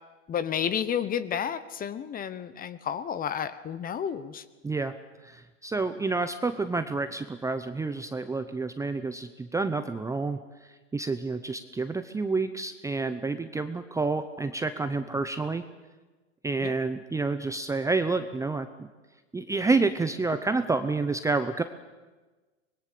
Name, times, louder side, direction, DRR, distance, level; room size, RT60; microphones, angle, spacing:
voice 1, 0.3-4.4 16.6-16.7, left 8 dB, 25° left, 15 dB, 1.2 m, -31 dB
voice 2, 4.6-4.9 5.2-10.4 10.9-15.6 16.4-18.7 19.3-21.6, right 3 dB, 10° right, 9 dB, 0.8 m, -29 dB
24.5 x 21.0 x 6.9 m, 1.2 s
hypercardioid pair, 110°, 37 cm